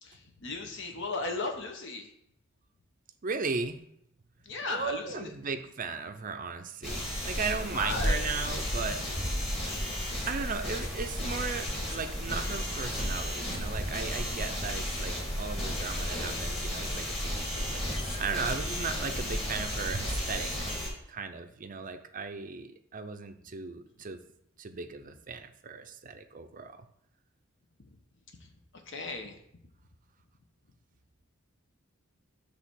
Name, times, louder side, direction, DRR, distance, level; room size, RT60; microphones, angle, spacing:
voice 1, 0.0-2.1 4.4-5.3 7.7-8.2 27.9-28.0 28.4-29.4, left 3 dB, 60° left, 4 dB, 1.1 m, -36 dB
voice 2, 3.2-3.8 4.7-9.0 10.3-20.7 21.1-24.2 24.6-26.8, right 5 dB, 40° right, 8 dB, 0.6 m, -36 dB
sound 1, 6.8-20.9, equal, 30° left, 2.2 m, -33 dB
7.9 x 3.4 x 6.2 m, 0.73 s
head